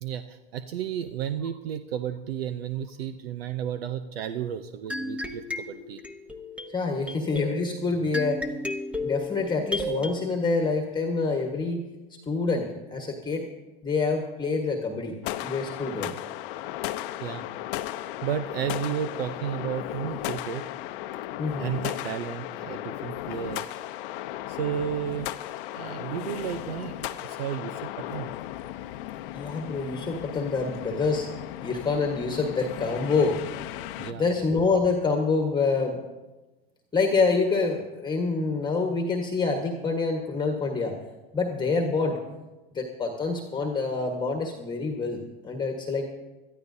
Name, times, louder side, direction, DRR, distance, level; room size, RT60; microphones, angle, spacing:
voice 1, 0.0-6.0 17.2-17.5 18.2-20.7 21.6-23.8 24.5-25.4 25.7-28.3 34.0-34.3, right 9 dB, 75° right, 10 dB, 0.7 m, -33 dB
sound 1, 4.9-10.1, left 1 dB, 5° right, 0.9 m, -34 dB
voice 2, 6.7-8.4 9.0-11.8 12.3-13.5 13.8-15.1 15.4-16.1 21.4-21.7 29.3-31.3 31.6-33.4 34.1-36.0 36.9-41.0 41.3-42.2 42.7-46.1, left 4 dB, 15° left, 3 dB, 1.4 m, -26 dB
sound 2, 15.2-34.1, left 14 dB, 60° left, 0.7 m, -36 dB
21.5 x 13.5 x 2.7 m, 1.1 s
hypercardioid pair, 105°, 30 cm